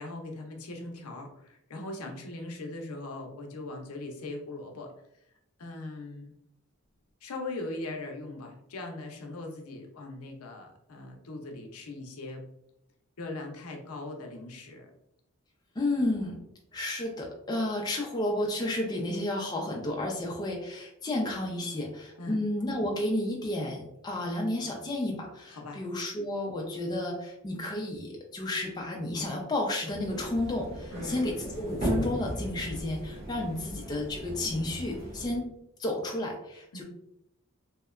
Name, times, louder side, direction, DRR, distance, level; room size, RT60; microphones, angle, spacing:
voice 1, 0.0-4.9 5.6-6.3 7.2-12.4 13.2-14.9 22.2-22.4 25.5-25.8 30.9-31.2 36.7-36.8, left 2 dB, 80° left, 3 dB, 0.5 m, -40 dB
voice 2, 15.8-16.4 16.7-35.5 35.8-36.8, left 1 dB, 20° left, 0 dB, 0.3 m, -32 dB
sound 1, 29.9-35.4, right 1 dB, 40° right, 0.9 m, -36 dB
2.7 x 2.1 x 2.3 m, 0.77 s
head